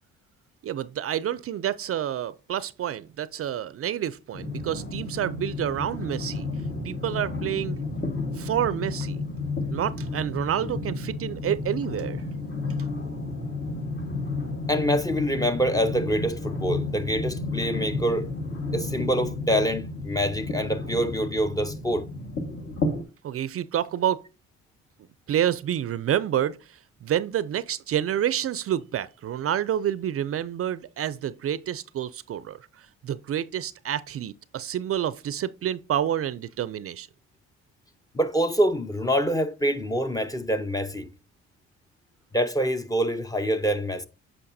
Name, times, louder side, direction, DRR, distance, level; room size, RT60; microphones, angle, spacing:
voice 1, 0.6-6.5 6.8-7.8 8.4-9.2 9.7-12.2 23.2-24.2 25.3-26.6 27.0-37.1, right 10 dB, 50° right, 0.4 m, -28 dB
sound 1, 4.3-23.0, left 2 dB, 50° left, 1.6 m, -32 dB
voice 2, 14.7-18.3 18.7-22.1 38.1-41.1 42.3-44.1, equal, 10° left, 0.6 m, -25 dB
8.5 x 5.4 x 2.6 m
cardioid pair, 90°, 30 cm